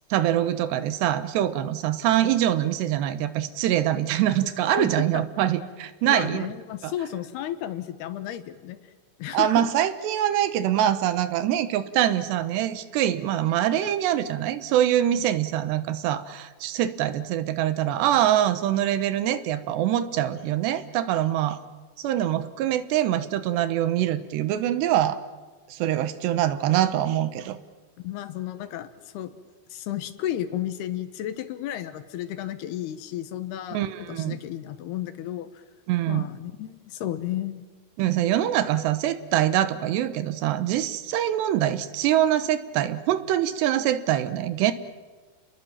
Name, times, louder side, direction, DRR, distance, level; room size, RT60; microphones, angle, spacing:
voice 1, 0.1-6.5 6.8-6.9 9.3-21.6 22.0-25.2 25.7-27.6 33.7-34.4 35.9-36.3 38.0-44.7, right 12 dB, 90° right, 12 dB, 3.3 m, -24 dB
voice 2, 4.8-5.2 6.0-8.8 9.2-9.6 28.0-29.3 29.7-33.8 34.1-35.6 36.1-37.6, left 12 dB, 75° left, 11 dB, 3.1 m, -33 dB
30.0 x 21.0 x 7.4 m, 1.3 s
omnidirectional pair, 4.8 m